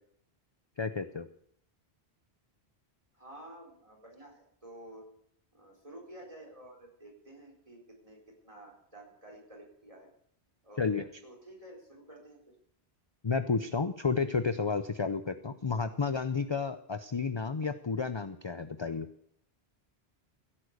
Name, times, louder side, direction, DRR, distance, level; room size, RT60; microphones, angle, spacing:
voice 1, 0.8-1.3 10.8-11.1 13.2-19.1, left 5 dB, 30° left, 10 dB, 0.5 m, -31 dB
voice 2, 3.1-5.0 5.5-10.1 10.6-12.5, right 1 dB, 30° right, 0 dB, 4.3 m, -51 dB
16.0 x 8.7 x 6.6 m, 0.68 s
omnidirectional pair, 1.1 m